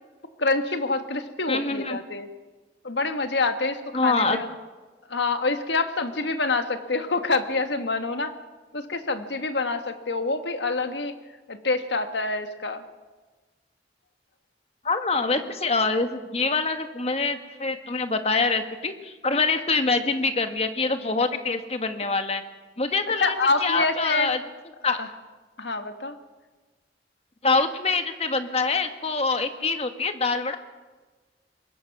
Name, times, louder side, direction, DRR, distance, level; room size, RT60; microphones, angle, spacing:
voice 1, 0.4-2.3 2.8-4.5 5.1-8.3 8.7-11.1 11.5-12.8 23.2-24.3 25.0-25.1 25.6-26.2, left 3 dB, 75° left, 8 dB, 1.5 m, -26 dB
voice 2, 1.5-2.0 3.9-4.4 14.8-22.4 22.8-23.3 23.6-24.4 24.8-25.0 27.4-30.6, left 3 dB, 35° left, 7 dB, 1.4 m, -25 dB
24.0 x 21.0 x 6.0 m, 1.3 s
head